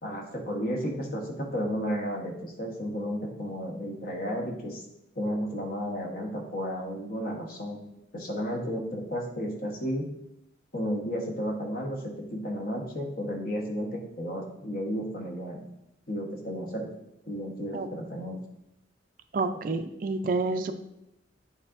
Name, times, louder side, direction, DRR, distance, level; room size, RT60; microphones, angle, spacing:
voice 1, 0.0-4.8 5.1-7.8 8.1-10.1 10.7-15.7 16.1-16.9 17.3-18.4, equal, 50° left, 1 dB, 1.1 m, -33 dB
voice 2, 19.3-20.7, right 3 dB, 45° right, 8 dB, 0.4 m, -28 dB
8.5 x 4.8 x 2.5 m, 0.84 s
head